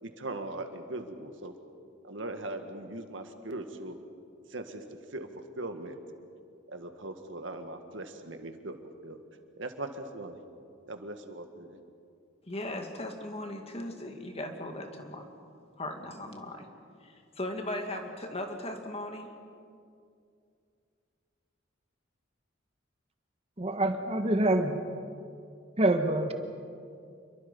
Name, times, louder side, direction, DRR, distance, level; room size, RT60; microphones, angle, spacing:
voice 1, 0.0-1.6 2.0-4.0 4.5-4.8 5.1-6.0 6.7-8.8 9.0-9.2 9.6-10.4 10.9-11.8, right 2 dB, 75° right, 6 dB, 1.8 m, -40 dB
voice 2, 12.5-15.3 15.8-16.7 17.0-19.3, left 1 dB, 30° left, 4 dB, 2.2 m, -38 dB
voice 3, 23.6-24.8 25.8-26.3, right 1 dB, 30° right, 6 dB, 1.3 m, -26 dB
28.0 x 23.0 x 5.4 m, 2.4 s
head